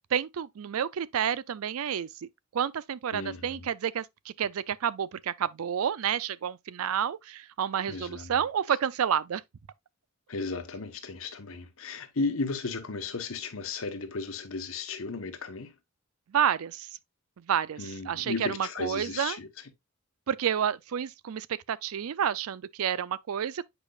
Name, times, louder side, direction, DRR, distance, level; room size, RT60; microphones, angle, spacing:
voice 1, 0.1-9.4 16.3-16.9 17.4-17.8 18.1-19.4 20.3-23.7, right 8 dB, 85° right, 0.4 m, -30 dB
voice 2, 3.1-3.7 7.9-8.4 10.3-15.7 17.8-19.5, left 3 dB, 75° left, 1.1 m, -35 dB
8.4 x 4.9 x 2.4 m
head